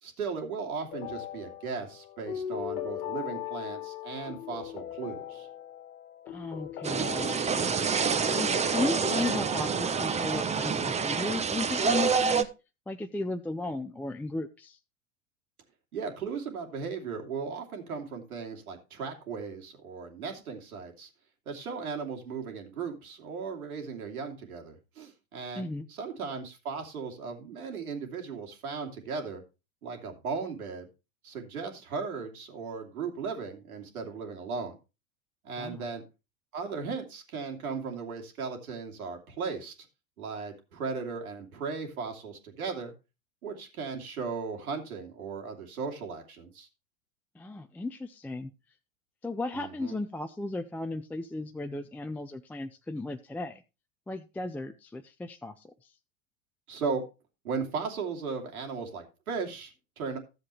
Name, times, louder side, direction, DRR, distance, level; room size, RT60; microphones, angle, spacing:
voice 1, 0.0-5.5 15.9-21.1 21.5-29.4 29.8-30.9 31.2-34.7 35.4-36.0 36.5-39.7 40.2-42.9 43.4-46.7 49.5-49.9 56.7-57.0 57.4-60.2, right 5 dB, 80° right, 3 dB, 2.9 m, -36 dB
sound 1, 0.9-10.0, left 11 dB, 80° left, 1.5 m, -39 dB
voice 2, 6.3-7.9 8.4-12.5 12.9-14.8 25.6-25.9 35.6-35.8 47.3-48.5 49.2-53.6 54.1-55.9, left 2 dB, 5° left, 7 dB, 0.4 m, -35 dB
sound 2, 6.8-12.4, right 6 dB, 15° right, 0.8 m, -27 dB
13.5 x 7.6 x 3.2 m, 0.28 s
hypercardioid pair, 95°, 43 cm